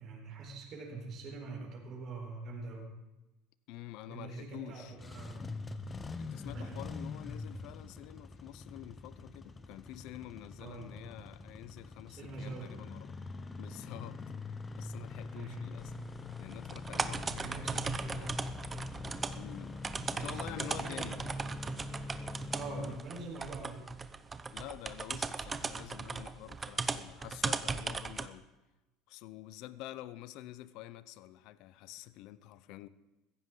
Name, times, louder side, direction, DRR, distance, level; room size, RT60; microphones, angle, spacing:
voice 1, 0.0-2.9 4.1-5.4 6.5-6.8 10.6-11.3 12.1-12.7 15.3-15.7 17.2-18.4 20.1-21.4 22.5-23.9, right 3 dB, 40° right, -1 dB, 4.1 m, -44 dB
voice 2, 3.7-4.9 6.2-13.1 13.6-16.0 16.4-18.3 19.3-19.8 20.1-21.2 24.5-28.5 29.1-32.9, left 15 dB, 60° left, 15 dB, 0.6 m, -48 dB
Engine starting, 4.8-23.0, left 3 dB, 20° left, 0.8 m, -44 dB
sound 1, 15.8-28.3, right 4 dB, 20° right, 0.6 m, -38 dB
15.0 x 15.0 x 3.9 m, 1.1 s
cardioid pair, 135°, 0 cm